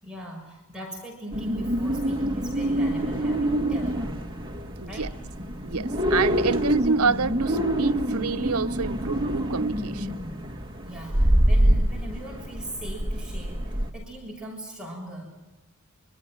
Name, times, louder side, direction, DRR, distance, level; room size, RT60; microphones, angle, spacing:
voice 1, 0.0-4.1 4.9-5.1 10.8-15.3, equal, 5° right, 6.6 m, -40 dB
sound 1, 1.3-13.9, equal, 20° right, 2.2 m, -26 dB
voice 2, 5.6-10.1, right 5 dB, 85° right, 0.8 m, -27 dB
26.0 x 25.5 x 7.4 m
head